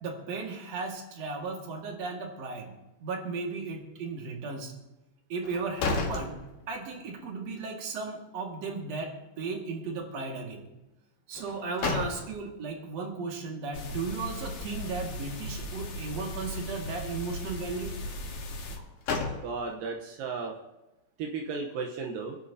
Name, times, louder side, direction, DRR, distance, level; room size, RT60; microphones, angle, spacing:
voice 1, 0.0-2.7 3.0-4.7 5.3-6.4 6.7-10.7 11.3-17.9, right 4 dB, 55° right, 0 dB, 3.1 m, -35 dB
sound 1, 5.4-7.1 7.4-7.5 11.3-12.6 18.6-19.9, left 4 dB, 90° left, 3.3 m, -33 dB
sound 2, 13.7-18.8, left 1 dB, 60° left, 3.3 m, -38 dB
voice 2, 19.4-20.6 21.2-22.4, right 4 dB, 80° right, 1 dB, 2.8 m, -34 dB
27.5 x 11.0 x 2.8 m, 0.96 s
omnidirectional pair, 3.9 m